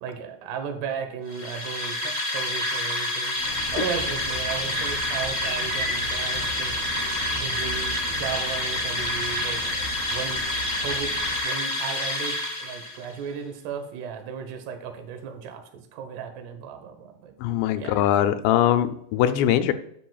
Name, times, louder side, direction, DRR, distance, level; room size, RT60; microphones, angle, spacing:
voice 1, 0.0-3.4 3.7-6.7 7.3-9.6 10.1-10.4 10.8-11.1 11.4-17.3 17.8-18.0, right 7 dB, 75° right, 6 dB, 3.0 m, -35 dB
sound 1, 1.3-13.1, left 1 dB, 55° left, 1.2 m, -28 dB
sound 2, 3.4-11.4, equal, 30° right, 2.2 m, -37 dB
voice 2, 17.4-19.7, left 11 dB, 85° left, 9 dB, 2.8 m, -22 dB
11.5 x 7.7 x 2.4 m, 0.71 s
omnidirectional pair, 5.1 m